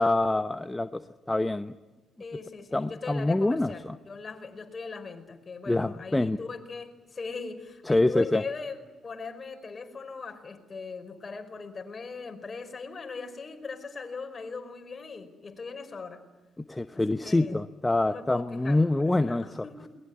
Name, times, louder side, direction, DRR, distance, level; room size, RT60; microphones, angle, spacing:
voice 1, 0.0-1.7 2.7-4.0 5.7-6.4 7.9-8.4 16.7-19.6, left 2 dB, 15° left, 11 dB, 0.9 m, -26 dB
voice 2, 2.2-16.2 17.1-17.6 18.0-19.9, left 4 dB, 40° left, 6 dB, 4.9 m, -40 dB
22.0 x 20.0 x 9.8 m, 1.3 s
supercardioid pair, 60°, 0 cm